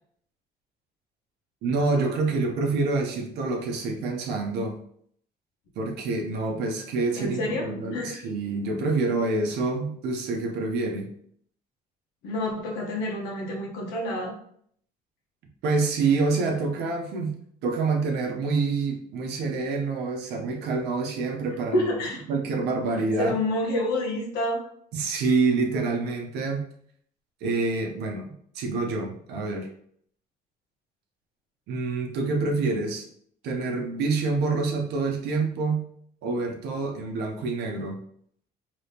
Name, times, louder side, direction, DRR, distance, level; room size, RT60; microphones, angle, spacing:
voice 1, 1.6-4.8 5.8-11.1 15.6-21.9 22.3-23.4 24.9-26.7 27.4-29.7 31.7-33.1 33.4-35.8 36.2-38.0, right 3 dB, 80° right, 1 dB, 0.7 m, -27 dB
voice 2, 7.2-7.6 7.9-8.2 12.2-14.3 21.7-22.2 23.2-24.6, left 1 dB, 90° left, -1 dB, 1.0 m, -28 dB
3.3 x 3.0 x 2.8 m, 0.64 s
cardioid pair, 110°, 17 cm